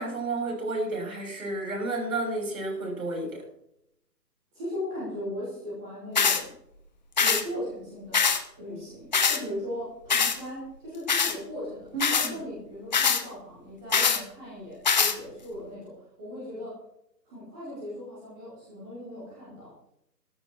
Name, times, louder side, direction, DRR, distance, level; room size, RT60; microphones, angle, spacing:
voice 1, 0.0-3.4 11.9-12.3, right 2 dB, 55° right, 2 dB, 6.4 m, -31 dB
voice 2, 4.5-6.5 7.2-8.3 8.5-16.8 17.3-19.7, left 1 dB, 5° right, -9 dB, 0.7 m, -38 dB
sound 1, 6.2-6.4 7.2-7.4 8.1-8.4 9.1-9.4 10.1-10.4 11.1-11.4 12.0-12.3 12.9-13.2 13.9-14.2 14.9-15.2, left 6 dB, 25° left, 0.9 m, -23 dB
13.5 x 13.0 x 4.6 m, 0.75 s
figure-of-eight pair, 140°, 49 cm